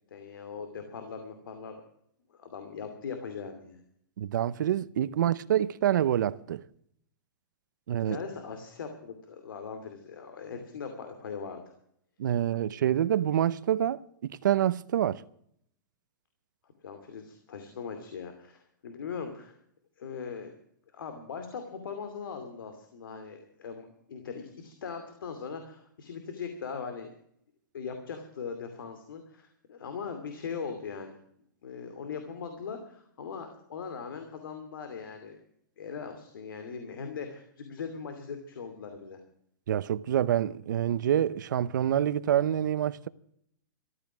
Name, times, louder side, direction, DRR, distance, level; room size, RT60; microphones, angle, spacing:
voice 1, 0.1-1.8 2.3-3.8 8.1-11.7 16.8-19.6 20.0-20.5 20.9-27.1 27.7-31.2 31.6-35.4 35.8-39.2, left 6 dB, 80° left, 2.6 m, -40 dB
voice 2, 4.2-6.6 7.9-8.2 12.2-15.2 39.7-43.1, right 11 dB, 60° right, 0.7 m, -27 dB
14.0 x 13.0 x 6.2 m
hypercardioid pair, 170°, 11 cm